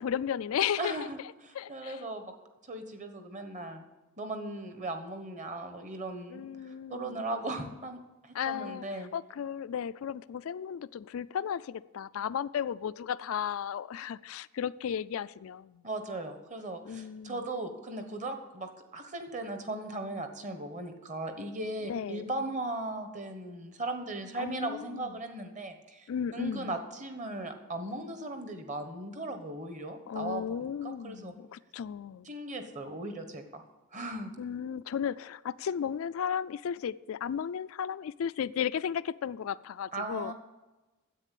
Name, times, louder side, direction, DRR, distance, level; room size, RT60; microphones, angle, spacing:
voice 1, 0.0-1.1 1.5-2.0 6.3-7.2 8.3-8.9 9.1-15.8 16.9-17.4 21.8-22.3 24.4-25.1 26.1-26.7 30.1-32.3 34.4-40.3, left 8 dB, 65° left, 0.3 m, -34 dB
voice 2, 0.8-2.3 2.7-3.8 4.2-6.4 6.9-9.1 15.8-30.5 30.8-31.3 32.2-33.6 33.9-34.3 39.9-40.3, right 2 dB, 35° right, 1.3 m, -37 dB
9.9 x 8.3 x 8.3 m
head